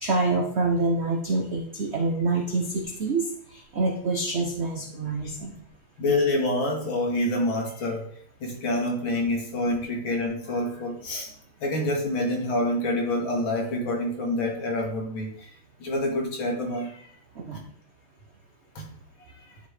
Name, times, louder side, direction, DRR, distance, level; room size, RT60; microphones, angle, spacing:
voice 1, 0.0-5.6 17.3-17.7, right 3 dB, 80° right, 1 dB, 0.6 m, -26 dB
voice 2, 6.0-8.1 8.4-11.3 11.6-15.5 15.8-17.1 17.5-17.6 18.8-18.9, left 1 dB, 70° left, 0 dB, 2.5 m, -27 dB
10.5 x 4.8 x 3.4 m, 0.62 s
omnidirectional pair, 2.3 m